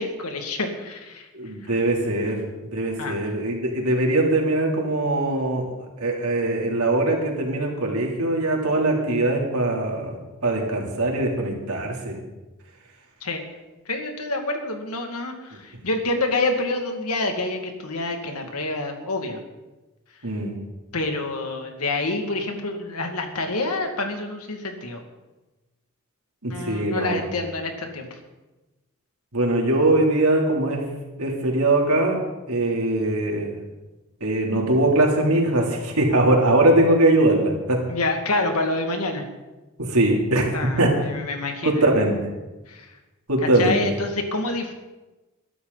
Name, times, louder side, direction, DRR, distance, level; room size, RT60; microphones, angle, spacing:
voice 1, 0.0-1.3 1.6-1.7 3.0-3.2 13.2-13.4 13.9-19.4 20.9-25.0 26.5-28.1 37.9-39.3 40.5-41.8 42.7-42.9 43.5-44.7, left 2 dB, 85° left, 4 dB, 2.3 m, -27 dB
voice 2, 1.3-2.4 2.7-5.7 6.0-10.2 10.4-12.2 20.2-20.6 26.4-27.2 29.3-30.9 31.2-32.2 32.5-33.5 34.2-37.8 39.8-41.0 41.6-42.2 43.3-43.8, right 2 dB, 85° right, 0 dB, 3.4 m, -21 dB
21.5 x 12.5 x 4.1 m, 1.1 s
head